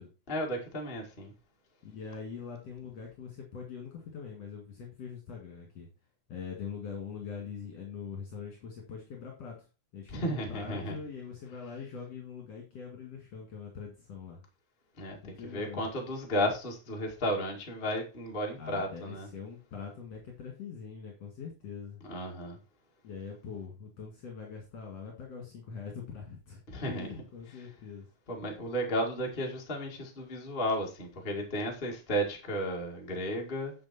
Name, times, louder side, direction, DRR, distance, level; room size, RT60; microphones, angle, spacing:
voice 1, 0.3-1.3 10.1-11.0 15.0-19.3 22.0-22.6 26.7-27.1 28.3-33.7, equal, 20° left, 1.8 m, -33 dB
voice 2, 1.8-5.9 6.3-9.7 9.9-14.4 15.2-15.9 18.6-22.0 23.0-28.1, left 6 dB, 60° left, 3.1 m, -43 dB
10.5 x 5.8 x 4.3 m
omnidirectional pair, 3.5 m